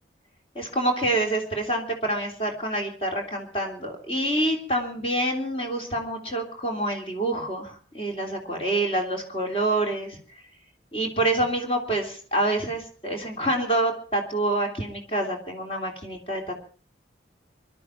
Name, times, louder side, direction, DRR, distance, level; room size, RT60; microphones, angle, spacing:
voice 1, 0.5-10.2 10.9-16.6, right 1 dB, 30° left, 2 dB, 3.2 m, -27 dB
24.0 x 12.0 x 4.5 m, 0.42 s
head